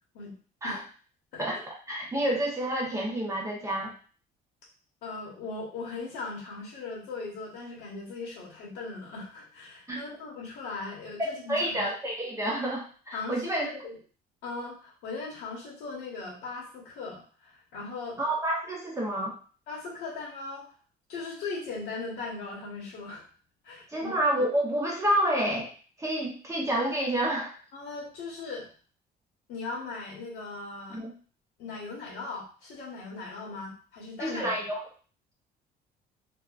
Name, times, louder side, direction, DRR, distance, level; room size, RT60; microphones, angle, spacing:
voice 1, 1.9-3.9 9.9-10.0 11.2-13.7 18.2-19.3 23.9-25.7 26.0-27.5 30.9-31.1 34.2-34.8, right 1 dB, 15° right, -2 dB, 0.8 m, -29 dB
voice 2, 5.0-11.9 13.1-14.0 14.4-18.2 19.7-20.7 21.1-23.2 23.6-24.1 27.7-28.7 29.5-31.0 31.6-34.5, left 3 dB, 85° left, -4 dB, 1.1 m, -39 dB
2.8 x 2.3 x 2.4 m, 0.40 s
cardioid pair, 110°, 17 cm